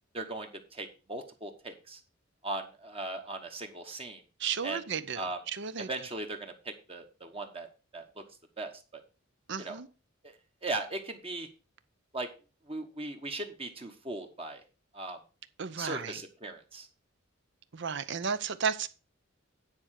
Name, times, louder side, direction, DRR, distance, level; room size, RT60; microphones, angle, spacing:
voice 1, 0.1-2.0 2.4-4.2 4.6-4.8 5.2-5.4 5.9-7.7 7.9-8.1 8.6-9.0 9.6-9.8 10.2-10.3 10.6-11.5 12.1-12.3 12.7-14.6 14.9-15.2 15.8-16.9, right 2 dB, 30° right, 1.2 m, -38 dB
voice 2, 4.4-5.9 9.5-9.9 15.6-16.2 17.7-18.9, right 6 dB, 60° right, 0.7 m, -33 dB
9.6 x 4.4 x 6.4 m
head